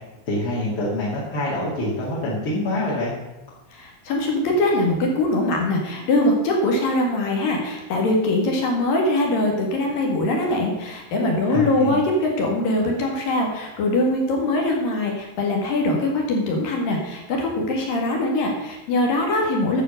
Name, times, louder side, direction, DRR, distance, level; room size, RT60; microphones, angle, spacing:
voice 1, 0.3-3.1 11.5-12.0, left 1 dB, 35° left, -8 dB, 2.7 m, -25 dB
voice 2, 3.7-19.8, left 1 dB, 60° left, 0 dB, 3.4 m, -22 dB
9.9 x 7.7 x 6.6 m, 1.0 s
omnidirectional pair, 5.0 m